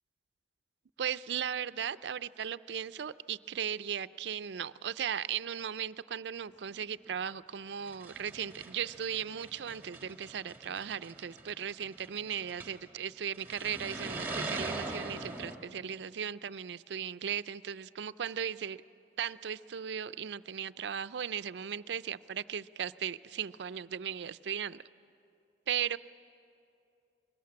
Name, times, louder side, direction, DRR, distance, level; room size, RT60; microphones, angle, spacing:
voice 1, 1.0-18.8 19.2-24.8 25.7-26.0, right 8 dB, 80° right, 15 dB, 0.4 m, -37 dB
sound 1, 7.1-7.2 7.8-12.9 13.3-15.6, right 2 dB, 10° right, 1.6 m, -42 dB
22.5 x 19.5 x 8.6 m, 2.6 s
head